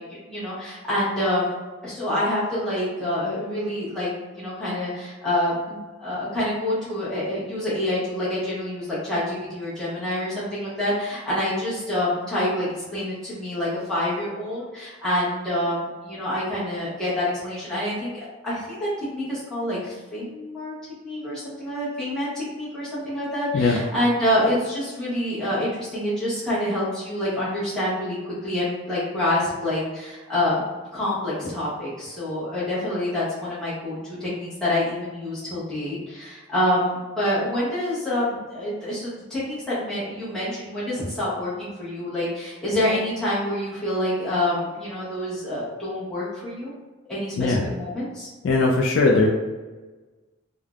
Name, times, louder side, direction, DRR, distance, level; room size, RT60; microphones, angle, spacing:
voice 1, 0.3-1.5 1.8-4.1 4.3-20.7 21.0-30.6 30.9-46.8 47.1-48.3, left 1 dB, 5° left, -12 dB, 0.8 m, -27 dB
voice 2, 48.4-49.3, left 3 dB, 60° left, 0 dB, 0.3 m, -19 dB
3.2 x 2.0 x 2.4 m, 1.3 s
head